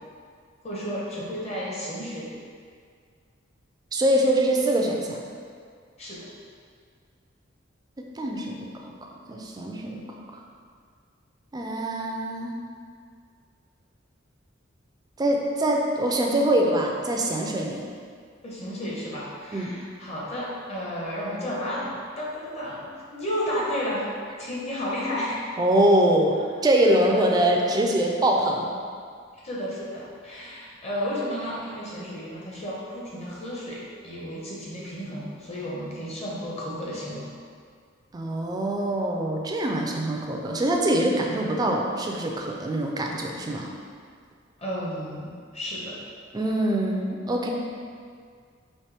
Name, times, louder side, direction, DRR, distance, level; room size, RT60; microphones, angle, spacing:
voice 1, 0.6-2.4 6.0-6.3 18.4-24.1 24.4-25.5 27.1-27.2 29.4-37.3 44.6-46.0, equal, 35° left, -6 dB, 1.0 m, -32 dB
voice 2, 3.9-5.2 8.2-8.9 9.3-10.0 11.5-12.6 15.2-17.9 19.5-19.7 25.6-26.4 26.6-28.7 38.1-43.7 46.3-47.5, right 1 dB, 20° right, 0 dB, 0.4 m, -24 dB
4.3 x 3.0 x 3.4 m, 2.1 s
head